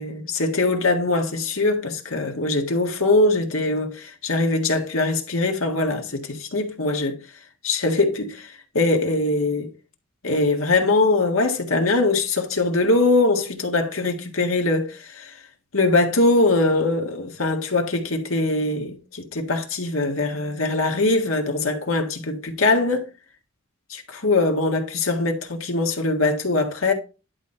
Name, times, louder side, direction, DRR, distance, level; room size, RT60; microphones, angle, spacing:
voice 1, 0.0-7.2 7.6-8.5 8.7-9.7 10.2-15.3 15.7-23.1 23.9-26.9, left 2 dB, 85° left, 1.8 m, -22 dB
11.0 x 4.2 x 4.4 m
head